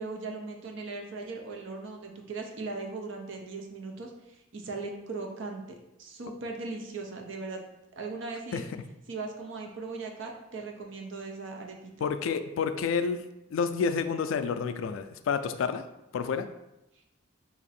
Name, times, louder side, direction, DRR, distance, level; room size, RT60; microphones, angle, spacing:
voice 1, 0.0-5.6 6.0-7.6 8.0-8.6 9.1-12.1, right 3 dB, 65° right, 2 dB, 0.6 m, -38 dB
voice 2, 8.5-8.8 12.0-13.2 13.5-15.8 16.1-16.5, left 5 dB, 75° left, 10 dB, 0.3 m, -29 dB
2.9 x 2.6 x 4.1 m, 0.90 s
head